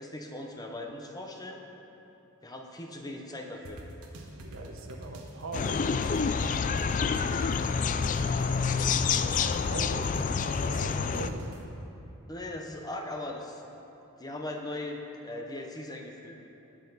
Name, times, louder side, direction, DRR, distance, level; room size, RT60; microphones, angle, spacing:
voice 1, 0.0-1.6 2.4-3.8 12.3-13.6 14.2-16.5, left 1 dB, 20° left, 2 dB, 0.8 m, -39 dB
sound 1, 3.6-11.6, right 1 dB, 85° right, 1.3 m, -45 dB
voice 2, 4.4-6.4 9.4-11.6, right 2 dB, 65° right, 3 dB, 1.0 m, -41 dB
sound 2, 5.5-11.3, left 5 dB, 35° left, 0.3 m, -28 dB
19.0 x 6.7 x 4.1 m, 2.9 s
head